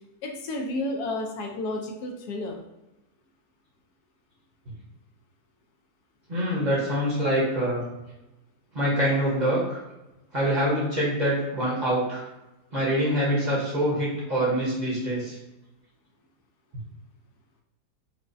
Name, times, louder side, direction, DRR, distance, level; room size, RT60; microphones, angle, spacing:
voice 1, 0.2-2.6, left 2 dB, 75° left, 2 dB, 1.1 m, -31 dB
voice 2, 6.3-7.9 8.7-9.8 10.3-12.2 12.7-15.4, equal, 35° right, -6 dB, 0.9 m, -25 dB
4.7 x 2.1 x 2.5 m, 0.98 s
omnidirectional pair, 1.7 m